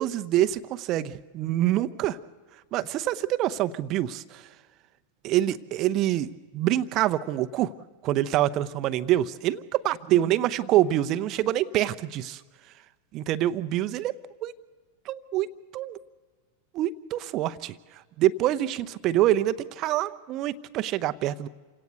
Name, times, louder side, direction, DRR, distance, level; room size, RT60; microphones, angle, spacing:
voice 1, 0.0-2.2 2.7-4.4 5.2-7.7 8.0-12.4 13.1-14.2 14.4-14.5 15.1-15.5 15.7-16.0 16.7-17.8 18.2-21.5, right 13 dB, 35° right, 13 dB, 0.8 m, -26 dB
28.0 x 17.5 x 8.1 m, 1.4 s
figure-of-eight pair, 90°, 0 cm